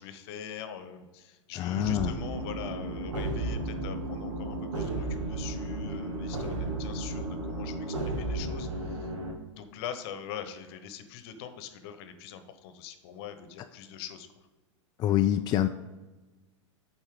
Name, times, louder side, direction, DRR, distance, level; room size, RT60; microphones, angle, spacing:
voice 1, 0.0-9.1 9.5-14.3, left 8 dB, 55° left, 9 dB, 1.0 m, -43 dB
voice 2, 1.6-2.2 15.0-15.7, left 12 dB, 30° left, 7 dB, 0.3 m, -25 dB
sound 1, 1.7-9.3, right 2 dB, 90° right, 1.6 m, -33 dB
11.0 x 4.4 x 3.7 m, 1.2 s
hypercardioid pair, 110°, 16 cm